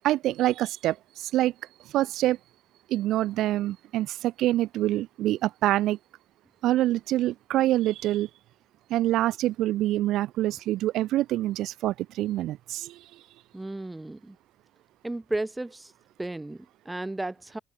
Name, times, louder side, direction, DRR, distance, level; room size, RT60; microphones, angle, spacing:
voice 1, 0.0-1.0 1.2-1.5 1.9-2.4 2.9-6.0 6.6-8.3 8.9-13.0, right 14 dB, 85° right, 5.5 m, -25 dB
voice 2, 13.5-14.4 15.0-15.9 16.2-17.6, right 2 dB, 15° right, 7.4 m, -34 dB
cardioid pair, 90°, 0 cm